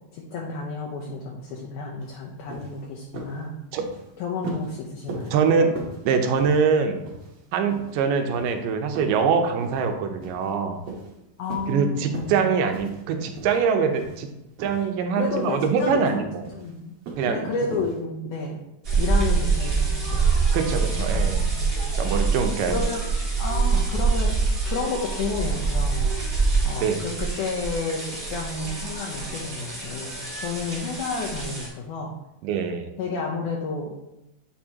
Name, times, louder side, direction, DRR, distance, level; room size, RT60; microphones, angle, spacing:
voice 1, 0.1-3.5 4.2-5.3 11.4-12.4 15.1-16.2 16.5-17.0 17.3-18.7 18.9-20.4 20.9-21.2 21.5-21.8 22.7-23.0 23.4-24.4 24.7-26.1 26.6-30.1 30.4-32.2 33.0-33.9, left 4 dB, 75° left, -1 dB, 2.0 m, -31 dB
sound 1, 2.0-2.1 2.5-2.8 3.1-3.4 3.7-4.0 4.4-4.7 5.1-5.4 5.8-6.0 6.4-6.7 7.1-7.4 7.7-7.9 8.3-8.5 9.0-9.2 9.6-9.8 10.2-10.5 10.9-11.1 11.5-11.7 12.1-12.4 12.7-13.0 13.3-13.7 14.0-14.3 14.6-14.9 15.2-15.5 15.8-16.0 16.4-16.7 17.1-17.3 17.7-18.0, right 4 dB, 60° right, 1.9 m, -38 dB
voice 2, 5.3-5.7 6.1-7.0 7.5-10.8 11.7-14.3 14.6-16.4 17.2-17.5 20.5-21.4 22.0-22.8 26.8-27.0 32.4-32.9, right 5 dB, 80° right, 6 dB, 2.2 m, -23 dB
sound 2, 18.8-31.7, right 4 dB, 20° right, 1.6 m, -25 dB
9.0 x 4.5 x 2.8 m, 0.90 s
omnidirectional pair, 4.0 m